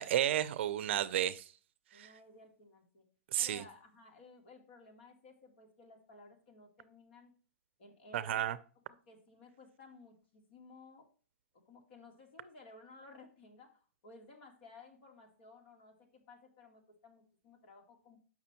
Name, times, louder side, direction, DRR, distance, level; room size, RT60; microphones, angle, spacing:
voice 1, 0.0-1.5 1.9-2.1 3.3-3.6 8.1-8.6, right 11 dB, 55° right, 16 dB, 0.5 m, -32 dB
voice 2, 1.9-3.1 3.4-7.3 7.8-8.4 9.1-11.1 11.5-18.2, left 3 dB, 50° left, 2 dB, 2.3 m, -57 dB
7.2 x 5.9 x 4.4 m, 0.39 s
hypercardioid pair, 155°, 7 cm